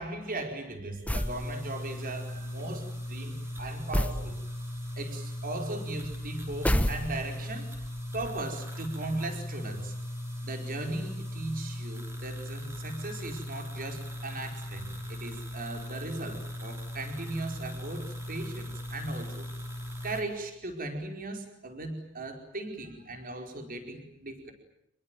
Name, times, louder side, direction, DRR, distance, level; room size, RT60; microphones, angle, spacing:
voice 1, 0.0-4.4 5.0-7.7 8.1-10.0 10.4-19.5 20.0-24.5, right 2 dB, 40° right, 4 dB, 4.7 m, -38 dB
sound 1, 1.1-1.4 3.9-4.3 6.6-7.4, equal, 5° left, 1.3 m, -27 dB
sound 2, 1.2-20.2, left 1 dB, 10° right, 4.7 m, -38 dB
27.0 x 22.0 x 9.2 m, 0.77 s
head